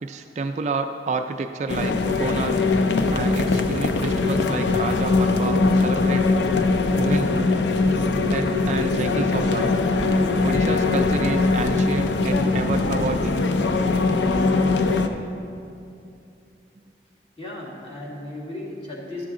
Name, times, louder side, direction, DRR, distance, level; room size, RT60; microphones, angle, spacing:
voice 1, 0.0-2.5 3.1-6.2 7.0-7.6 8.3-9.7 10.4-13.4, right 3 dB, 40° right, 7 dB, 0.3 m, -29 dB
sound 1, 1.7-15.1, left 3 dB, 85° left, 0.5 m, -21 dB
voice 2, 17.4-19.3, left 1 dB, 35° left, -4 dB, 1.7 m, -35 dB
11.5 x 6.9 x 3.7 m, 2.6 s
head